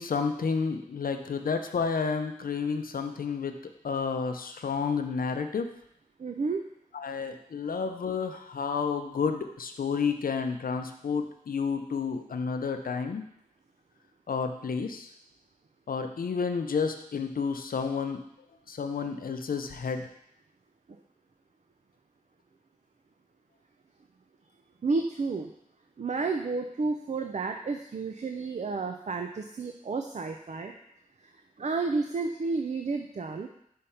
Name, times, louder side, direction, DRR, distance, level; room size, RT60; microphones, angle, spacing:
voice 1, 0.0-3.5 3.8-5.7 6.9-13.2 14.3-15.1 15.9-18.2 18.7-20.1, left 5 dB, 80° left, 6 dB, 0.6 m, -30 dB
voice 2, 6.2-6.6 24.8-25.5 26.0-30.7 31.2-31.3 31.6-33.5, right 4 dB, 55° right, 5 dB, 0.5 m, -31 dB
5.4 x 3.4 x 5.6 m, 0.74 s
cardioid pair, 45°, 15 cm